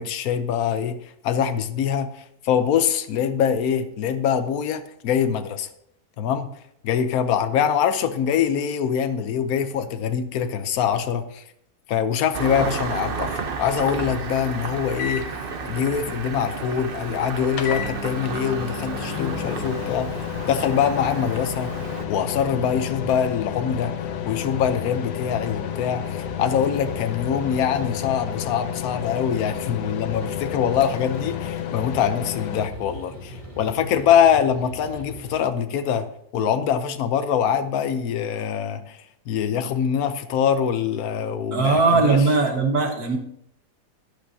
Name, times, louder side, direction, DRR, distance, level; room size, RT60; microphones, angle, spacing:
voice 1, 0.0-5.7 6.2-6.5 6.8-11.4 11.9-21.7 22.1-24.0 24.2-36.1 36.3-42.2, left 8 dB, 65° left, 9 dB, 1.2 m, -24 dB
Engine starting, 12.3-22.1, right 4 dB, 45° right, 0.8 m, -32 dB
sound 1, 14.6-32.7, left 10 dB, 90° left, 1.4 m, -32 dB
sound 2, 18.4-35.5, equal, 20° right, 1.8 m, -40 dB
voice 2, 41.5-43.2, right 3 dB, 65° right, 4 dB, 1.7 m, -19 dB
14.0 x 10.0 x 2.8 m, 0.74 s
omnidirectional pair, 1.7 m